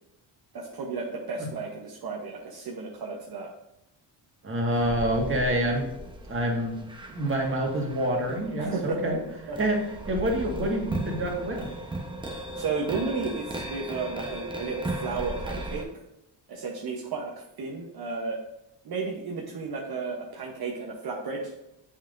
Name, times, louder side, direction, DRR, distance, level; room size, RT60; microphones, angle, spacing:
voice 1, 0.5-3.5 8.6-9.1 9.5-9.6 12.6-16.0 16.5-18.4 18.8-21.5, right 4 dB, 55° right, -1 dB, 1.1 m, -33 dB
voice 2, 4.4-5.9 6.3-6.7 7.1-9.2 9.6-9.8 10.1-11.6, right 1 dB, 25° right, 0 dB, 1.7 m, -27 dB
sound 1, 4.7-15.8, right 1 dB, 10° right, 1.0 m, -37 dB
7.2 x 5.7 x 2.6 m, 0.87 s
cardioid pair, 90°, 45 cm